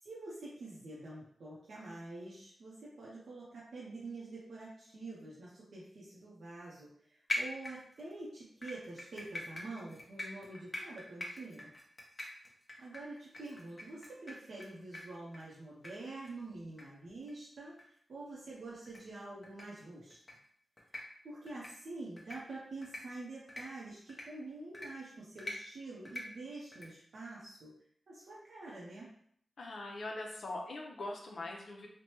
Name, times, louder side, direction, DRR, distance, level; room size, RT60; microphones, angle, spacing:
voice 1, 0.0-11.7 12.8-20.2 21.2-27.7 28.1-29.1, right 2 dB, 80° right, -6 dB, 0.6 m, -47 dB
sound 1, 7.3-8.1 8.6-14.7 14.9-15.0 15.3-15.4 15.8-15.9 16.2-16.3 16.8-16.9 17.2-17.3 17.8-17.9 18.9-19.0 19.4-19.6 20.1-20.3 20.8-21.0 21.5-21.7 22.2-22.4 22.8-23.0 23.5-23.6 24.1-24.2 24.7-24.9 25.4-25.6 26.1-26.2 26.7-26.9, left 1 dB, 30° left, 0.7 m, -41 dB
voice 2, 29.6-31.9, left 2 dB, 75° left, 0 dB, 0.5 m, -42 dB
3.1 x 2.1 x 2.9 m, 0.66 s
wide cardioid pair, 80°, 0 cm